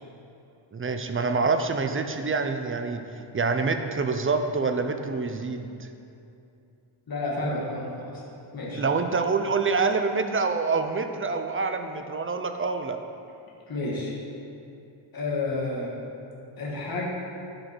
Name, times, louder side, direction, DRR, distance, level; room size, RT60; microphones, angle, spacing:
voice 1, 0.7-3.0 3.3-5.9 8.8-13.0, right 4 dB, 30° right, 7 dB, 0.4 m, -26 dB
voice 2, 7.1-8.2 8.5-8.8 13.7-14.1 15.1-16.0 16.6-17.1, left 2 dB, 45° left, -4 dB, 1.5 m, -30 dB
11.5 x 5.2 x 4.4 m, 2.7 s
wide cardioid pair, 170°, 50 cm